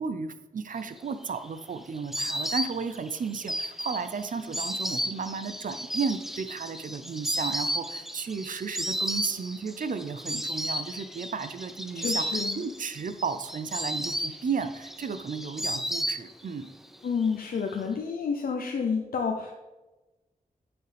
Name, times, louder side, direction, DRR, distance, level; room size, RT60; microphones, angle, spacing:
voice 1, 0.0-16.7, right 5 dB, 65° right, 11 dB, 0.6 m, -34 dB
Insect, 1.0-16.7 16.9-17.8, equal, ahead, 0.5 m, -34 dB
voice 2, 11.9-12.6 17.0-19.5, left 5 dB, 90° left, 2 dB, 0.7 m, -29 dB
8.8 x 6.9 x 3.4 m, 1.1 s
wide cardioid pair, 80°, 15 cm